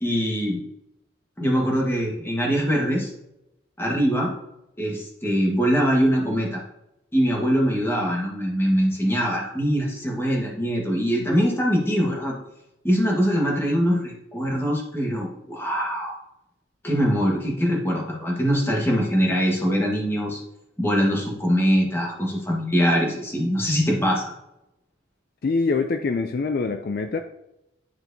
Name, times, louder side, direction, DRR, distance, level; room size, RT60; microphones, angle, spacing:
voice 1, 0.0-0.6 1.4-3.1 3.8-4.3 4.8-6.6 7.1-12.4 12.8-16.2 16.8-20.4 20.8-24.2, equal, 10° left, -2 dB, 1.4 m, -23 dB
voice 2, 25.4-27.2, left 4 dB, 50° left, 6 dB, 0.4 m, -24 dB
10.0 x 4.5 x 2.7 m, 0.87 s
head